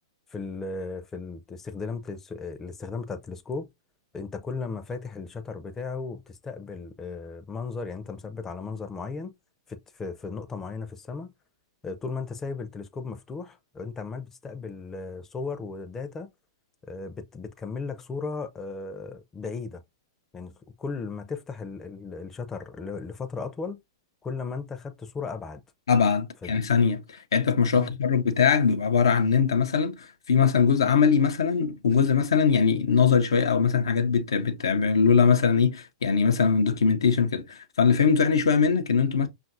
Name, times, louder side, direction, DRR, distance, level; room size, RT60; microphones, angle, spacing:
voice 1, 0.3-3.7 4.1-9.3 9.7-11.3 11.8-16.3 16.8-19.8 20.3-23.8 24.2-25.6 26.4-26.6 27.7-27.9, left 4 dB, 15° left, 0.5 m, -36 dB
voice 2, 25.9-39.3, left 6 dB, 70° left, 0.6 m, -22 dB
5.6 x 2.5 x 2.6 m
figure-of-eight pair, 105°, 2 cm